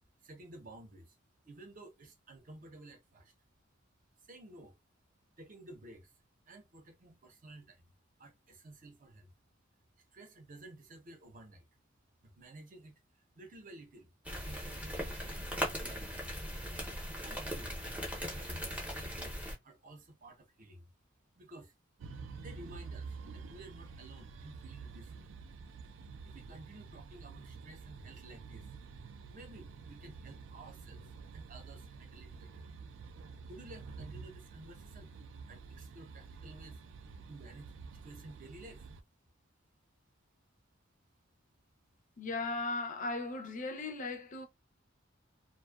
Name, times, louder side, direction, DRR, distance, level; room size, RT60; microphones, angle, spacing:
voice 1, 0.2-1.2 1.4-3.3 4.3-4.8 5.4-6.1 6.5-7.8 8.2-9.3 10.1-11.6 12.2-13.0 13.4-14.1 14.4-16.2 17.2-17.7 18.2-20.9 21.4-21.7 22.3-25.3 26.2-28.7 29.3-31.0 31.3-32.6 33.5-35.2 35.5-36.8 37.3-38.9, right 2 dB, 45° right, 0.7 m, -53 dB
sound 1, 14.2-19.5, equal, 5° right, 0.6 m, -39 dB
sound 2, 22.0-39.0, right 4 dB, 70° right, 0.4 m, -49 dB
voice 2, 42.2-44.5, left 3 dB, 40° left, 0.5 m, -37 dB
2.5 x 2.2 x 2.2 m
head